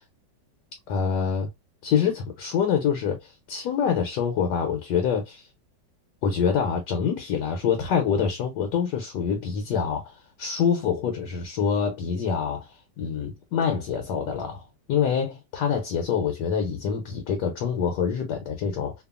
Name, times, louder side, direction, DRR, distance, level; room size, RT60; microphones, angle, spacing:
voice 1, 0.9-1.5 1.8-5.4 6.2-12.7 13.0-14.6 14.9-18.9, left 7 dB, 70° left, 1.1 m, -26 dB
2.8 x 2.3 x 2.3 m
omnidirectional pair, 2.0 m